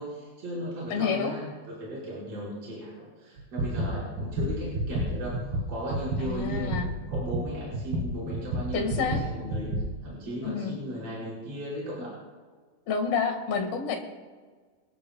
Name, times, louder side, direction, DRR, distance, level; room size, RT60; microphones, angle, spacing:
voice 1, 0.0-6.7 7.1-9.7 10.0-12.2, equal, 45° right, -8 dB, 6.4 m, -36 dB
voice 2, 0.9-1.3 6.2-6.9 8.7-9.2 10.4-10.8 12.9-14.0, left 5 dB, 85° left, 3 dB, 3.8 m, -28 dB
sound 1, 3.4-9.8, right 1 dB, 90° right, 5.1 m, -30 dB
27.0 x 12.5 x 2.3 m, 1.5 s
omnidirectional pair, 4.2 m